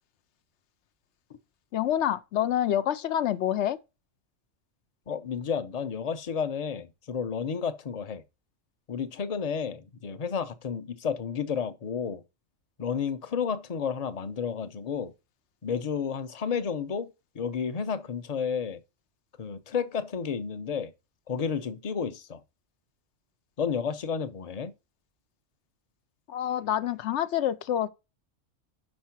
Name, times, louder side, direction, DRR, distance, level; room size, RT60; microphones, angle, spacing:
voice 1, 1.7-3.8 26.3-27.9, left 11 dB, 75° left, 0.9 m, -27 dB
voice 2, 5.1-8.2 8.9-12.2 12.8-15.1 15.6-17.1 17.3-18.8 19.4-20.9 21.3-22.4 23.6-24.7, left 6 dB, 40° left, 0.7 m, -31 dB
5.6 x 5.2 x 5.8 m
omnidirectional pair, 1.3 m